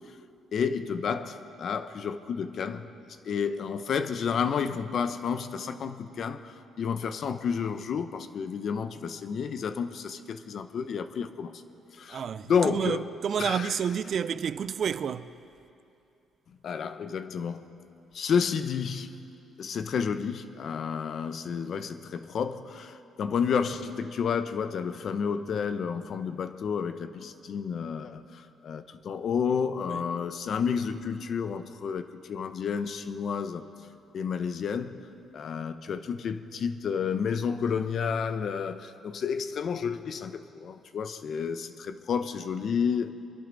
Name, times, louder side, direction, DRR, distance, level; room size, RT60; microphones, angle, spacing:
voice 1, 0.5-2.9 3.2-11.6 11.9-13.1 13.4-13.8 16.6-17.7 18.1-19.2 19.6-33.6 34.1-35.0 35.3-43.1, left 6 dB, 60° left, 0.8 m, -31 dB
voice 2, 12.1-15.3 29.9-30.0, right 7 dB, 55° right, 0.5 m, -30 dB
24.0 x 11.5 x 4.0 m
cardioid pair, 90°, 0 cm